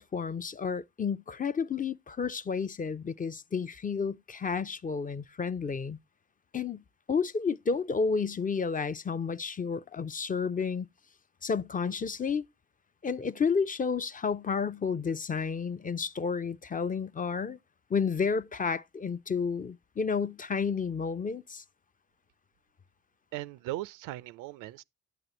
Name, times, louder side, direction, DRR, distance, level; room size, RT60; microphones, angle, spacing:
voice 1, 0.0-6.0 6.5-6.8 7.1-10.9 11.4-12.5 13.0-17.6 17.9-21.6, left 5 dB, 25° left, 0.5 m, -31 dB
voice 2, 23.3-24.8, right 17 dB, 85° right, 0.5 m, -38 dB
9.0 x 7.8 x 3.0 m
supercardioid pair, 60°, 31 cm